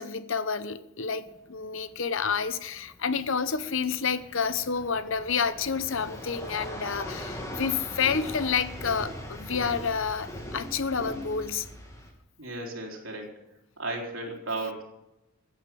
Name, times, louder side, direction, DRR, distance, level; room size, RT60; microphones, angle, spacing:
voice 1, 0.0-11.7, left 6 dB, 65° left, 14 dB, 0.9 m, -29 dB
sound 1, 1.3-12.1, equal, 15° left, 2.5 m, -40 dB
voice 2, 12.4-13.3 13.8-14.8, right 2 dB, 70° right, 0 dB, 3.8 m, -34 dB
15.0 x 8.9 x 7.7 m, 0.90 s
head